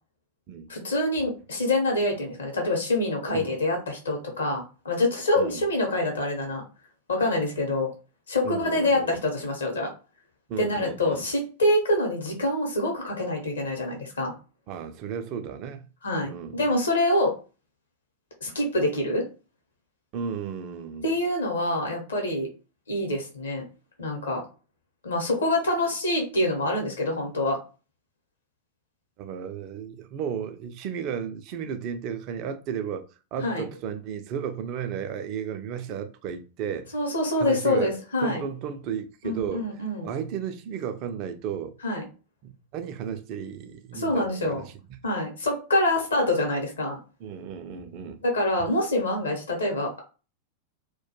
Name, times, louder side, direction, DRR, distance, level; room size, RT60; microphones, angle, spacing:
voice 1, 0.7-6.6 7.1-7.9 8.3-9.9 10.6-14.3 16.0-17.3 18.4-19.2 21.0-22.5 22.9-23.6 24.0-24.4 25.0-27.6 33.4-33.6 36.9-38.4 39.2-40.1 41.8-42.0 43.9-44.6 45.0-47.0 48.2-50.0, left 1 dB, 70° left, 0.8 m, -26 dB
voice 2, 5.4-5.7 8.4-9.2 10.5-11.2 14.7-15.8 16.2-16.6 20.1-21.1 29.2-36.9 37.4-37.9 38.2-41.8 42.4-44.7 47.2-48.2, right 7 dB, 40° right, 0.4 m, -34 dB
2.2 x 2.2 x 2.9 m
figure-of-eight pair, 90°, 0 cm